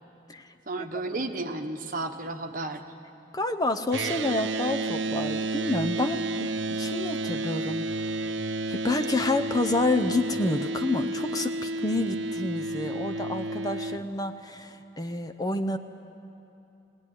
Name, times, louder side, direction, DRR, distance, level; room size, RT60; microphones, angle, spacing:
voice 1, 0.7-2.9, right 2 dB, 45° right, 5 dB, 1.3 m, -33 dB
voice 2, 3.3-8.2 8.7-15.8, left 2 dB, 20° left, 8 dB, 0.7 m, -29 dB
sound 1, 3.9-14.0, right 2 dB, 85° right, 0.6 m, -31 dB
21.5 x 18.0 x 10.0 m, 2.9 s
head